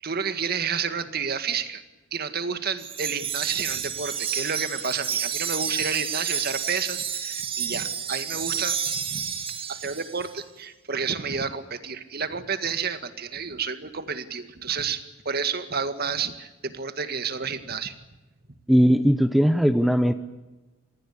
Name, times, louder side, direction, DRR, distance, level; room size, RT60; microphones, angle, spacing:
voice 1, 0.0-1.8 2.1-17.9, right 6 dB, 50° right, 10 dB, 2.0 m, -30 dB
Wind chime, 2.8-10.3, right 7 dB, 25° right, 2.1 m, -30 dB
voice 2, 18.7-20.1, equal, ahead, 10 dB, 0.8 m, -19 dB
27.0 x 20.0 x 8.5 m, 1.1 s
head